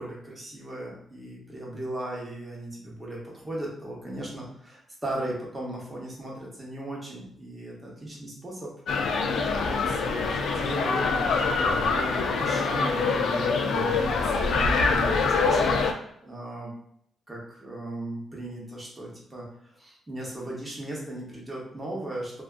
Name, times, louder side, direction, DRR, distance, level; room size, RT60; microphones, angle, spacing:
voice 1, 0.0-8.7 9.3-16.7 17.3-22.4, right 1 dB, 15° right, -4 dB, 0.8 m, -37 dB
sound 1, 8.9-15.9, left 4 dB, 75° left, 0.3 m, -24 dB
2.6 x 2.3 x 2.4 m, 0.68 s
cardioid pair, 130°, 0 cm